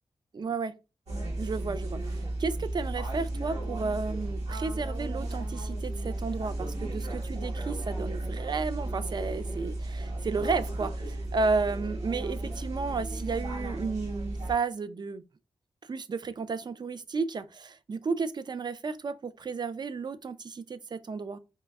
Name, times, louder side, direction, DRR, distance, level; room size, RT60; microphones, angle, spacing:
voice 1, 0.3-0.7 1.4-15.2 15.8-21.4, right 4 dB, 45° right, 0.3 m, -33 dB
sound 1, 1.1-14.5, right 1 dB, 90° right, 1.3 m, -34 dB
4.2 x 2.5 x 2.3 m
cardioid pair, 60°, 11 cm